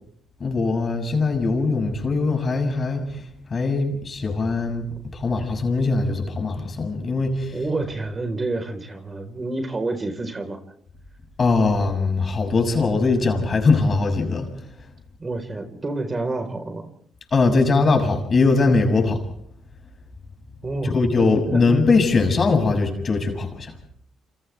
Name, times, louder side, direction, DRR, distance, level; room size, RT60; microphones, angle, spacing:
voice 1, 0.4-3.2 3.5-7.6 11.4-14.5 17.3-19.2 20.8-23.7, left 3 dB, 40° left, 4 dB, 6.7 m, -21 dB
voice 2, 7.5-10.6 15.2-16.8 20.6-21.6, right 2 dB, 30° right, 6 dB, 4.5 m, -29 dB
28.5 x 27.0 x 3.5 m, 0.65 s
supercardioid pair, 60°, 0 cm